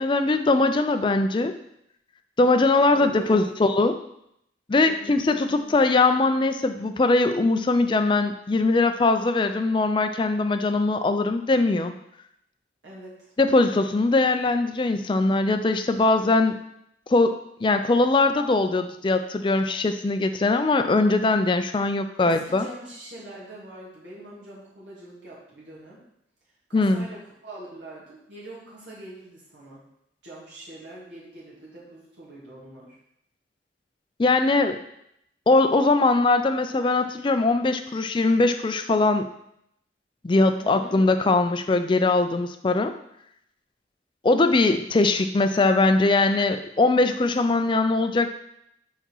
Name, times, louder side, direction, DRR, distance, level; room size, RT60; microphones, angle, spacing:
voice 1, 0.0-1.5 2.4-3.9 4.7-11.9 13.4-16.6 17.1-22.6 26.7-27.1 34.2-34.8 35.5-39.3 40.2-42.9 44.2-48.3, left 3 dB, 25° left, 8 dB, 0.3 m, -21 dB
voice 2, 2.9-3.6 4.8-5.7 12.8-13.3 22.2-26.0 26.7-29.8 30.2-33.0 40.6-41.0, right 1 dB, 75° right, -7 dB, 2.0 m, -43 dB
4.9 x 4.1 x 5.4 m, 0.77 s
head